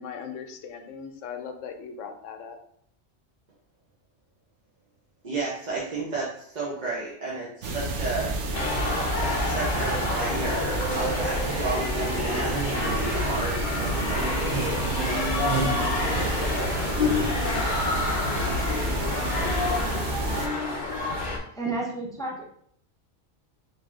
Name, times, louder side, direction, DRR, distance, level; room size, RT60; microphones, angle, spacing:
voice 1, 0.0-2.6, left 6 dB, 85° left, 6 dB, 0.9 m, -39 dB
voice 2, 5.2-8.3 9.3-14.7 15.1-15.9 16.1-16.7 18.3-18.9, right 3 dB, 45° right, -6 dB, 0.7 m, -33 dB
sound 1, 7.6-20.5, right 2 dB, 75° right, 1.0 m, -29 dB
sound 2, 8.5-21.4, left 3 dB, 50° left, 0.7 m, -28 dB
voice 3, 21.3-22.4, right 3 dB, 5° left, -2 dB, 0.3 m, -32 dB
3.2 x 2.7 x 3.5 m, 0.66 s
omnidirectional pair, 1.2 m